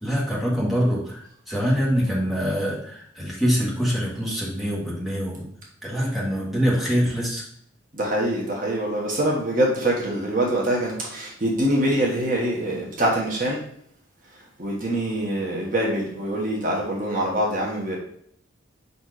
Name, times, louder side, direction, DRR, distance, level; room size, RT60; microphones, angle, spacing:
voice 1, 0.0-5.5 5.8-7.4, equal, ahead, -6 dB, 1.7 m, -24 dB
voice 2, 7.9-13.6 14.6-18.0, right 1 dB, 40° right, -2 dB, 1.2 m, -24 dB
5.2 x 4.2 x 4.8 m, 0.67 s
head